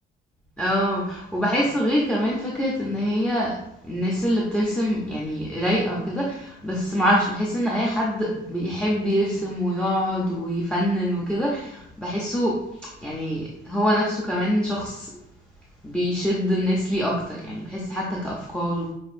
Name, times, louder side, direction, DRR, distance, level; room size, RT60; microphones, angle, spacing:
voice 1, 0.6-3.6 3.9-12.6 13.0-15.1 15.8-18.9, equal, 5° left, -3 dB, 0.6 m, -24 dB
6.2 x 2.6 x 2.5 m, 0.81 s
cardioid pair, 145°, 19 cm